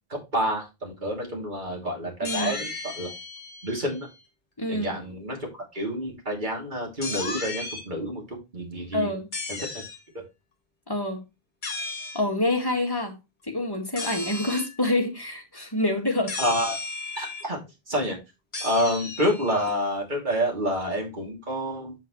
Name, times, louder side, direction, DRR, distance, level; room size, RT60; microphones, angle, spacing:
voice 1, 0.1-3.1 3.6-4.1 4.7-9.2 9.5-9.6 16.4-16.8 17.1-17.6 17.9-18.2 18.6-21.9, equal, 50° right, 3.1 m, -28 dB
sound 1, 2.2-4.2 7.0-7.8 9.3-10.0 11.6-12.2 14.0-14.8 16.3-17.4 18.5-19.7, left 3 dB, 50° left, 1.6 m, -35 dB
voice 2, 2.2-2.6 4.6-4.9 8.9-9.3 10.9-11.2 12.1-13.2 13.5-16.4, left 1 dB, 20° left, 1.9 m, -27 dB
8.0 x 6.3 x 3.1 m
omnidirectional pair, 1.1 m